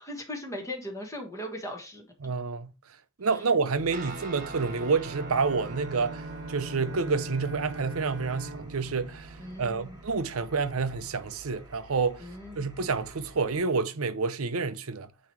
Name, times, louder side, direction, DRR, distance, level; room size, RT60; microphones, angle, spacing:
voice 1, 0.0-2.0 9.4-10.0 12.2-12.7, left 1 dB, 15° left, 1.5 m, -38 dB
voice 2, 2.2-2.7 3.2-6.2 6.5-12.2 12.6-15.1, right 4 dB, 75° right, 0.7 m, -28 dB
Engine, 3.7-13.6, right 2 dB, 20° right, 1.6 m, -51 dB
Guitar, 3.9-11.5, right 2 dB, 40° right, 1.2 m, -43 dB
Bowed string instrument, 5.0-10.3, right 4 dB, 60° right, 1.2 m, -44 dB
9.3 x 3.1 x 4.7 m
head